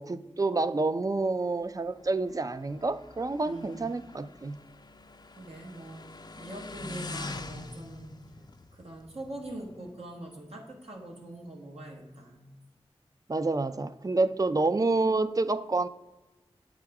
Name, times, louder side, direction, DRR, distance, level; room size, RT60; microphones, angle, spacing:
voice 1, 0.0-4.6 13.3-15.9, right 3 dB, 35° right, 13 dB, 0.4 m, -28 dB
Motorcycle, 1.6-9.9, left 3 dB, 40° left, 0.5 m, -45 dB
voice 2, 3.5-3.9 5.3-6.0 6.4-8.1 8.7-12.5, right 1 dB, 75° right, -1 dB, 1.1 m, -43 dB
7.7 x 3.7 x 4.7 m, 1.1 s
cardioid pair, 40°, 10 cm